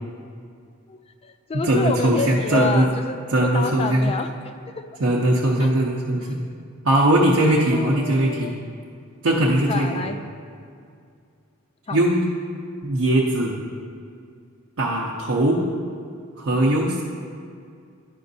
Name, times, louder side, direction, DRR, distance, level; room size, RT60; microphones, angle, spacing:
voice 1, 0.9-4.9 5.6-5.7 7.7-8.6 9.7-10.2 11.9-12.0, left 4 dB, 25° left, 8 dB, 0.3 m, -28 dB
voice 2, 1.6-2.9 3.3-4.1 5.0-6.4 6.8-8.5 9.2-9.9 11.9-12.3 12.8-13.6 14.8-15.6 16.4-17.0, right 1 dB, 65° right, -4 dB, 0.7 m, -20 dB
10.5 x 5.2 x 2.7 m, 2.3 s
head